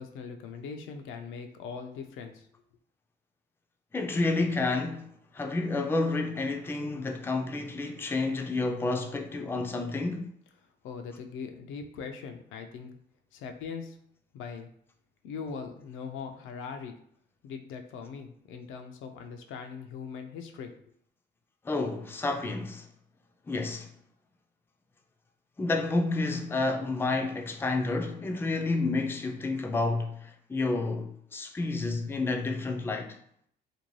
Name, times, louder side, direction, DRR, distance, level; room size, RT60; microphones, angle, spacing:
voice 1, 0.0-2.5 10.8-13.0 13.3-14.0 14.3-14.7 15.2-17.0 17.4-20.7, left 5 dB, 90° left, 0.4 m, -40 dB
voice 2, 3.9-10.3 21.6-22.9 23.5-23.9 25.6-33.2, left 3 dB, 10° left, 0.3 m, -30 dB
2.6 x 2.2 x 3.1 m
cardioid pair, 90°, 20 cm